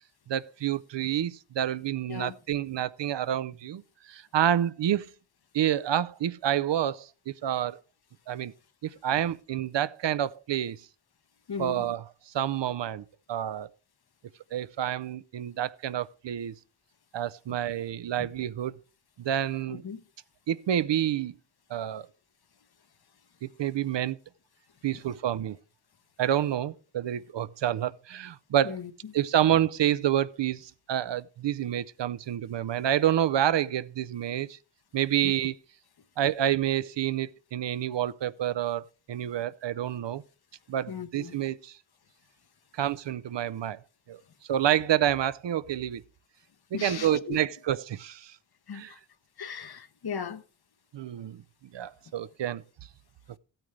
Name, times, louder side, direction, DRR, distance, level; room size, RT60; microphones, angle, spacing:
voice 1, 0.3-3.8 4.1-5.1 5.5-7.8 8.3-8.5 8.8-10.8 11.6-13.7 14.5-16.5 17.1-18.7 19.2-19.8 20.5-21.3 21.7-22.1 23.4-24.2 24.8-25.6 26.2-28.8 29.1-34.6 34.9-35.6 36.2-40.2 40.7-41.8 42.7-43.8 44.1-44.2 44.5-46.0 46.7-48.4 48.7-48.9 50.9-51.4 51.7-52.6, right 11 dB, 70° right, 0.5 m, -28 dB
voice 2, 11.5-11.9 18.2-18.3 19.7-20.0 28.6-29.1 35.2-35.3 40.9-41.4 46.7-47.4 48.7-49.0 49.4-50.4, left 7 dB, 55° left, 0.8 m, -37 dB
14.5 x 8.9 x 3.2 m
wide cardioid pair, 80°, 45 cm